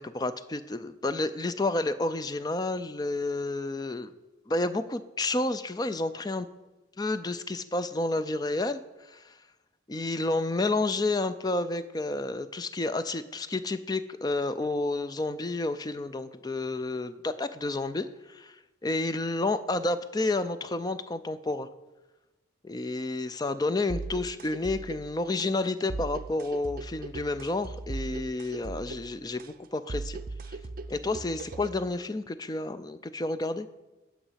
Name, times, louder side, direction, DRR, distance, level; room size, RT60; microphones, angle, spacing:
voice 1, 0.0-4.1 4.5-6.5 7.0-9.4 9.9-21.7 22.6-30.2 30.5-30.6 30.9-33.7, left 2 dB, 20° left, 12 dB, 0.4 m, -30 dB
sound 1, 23.9-31.9, right 3 dB, 45° right, 0.5 m, -39 dB
9.8 x 6.3 x 5.7 m, 1.1 s
head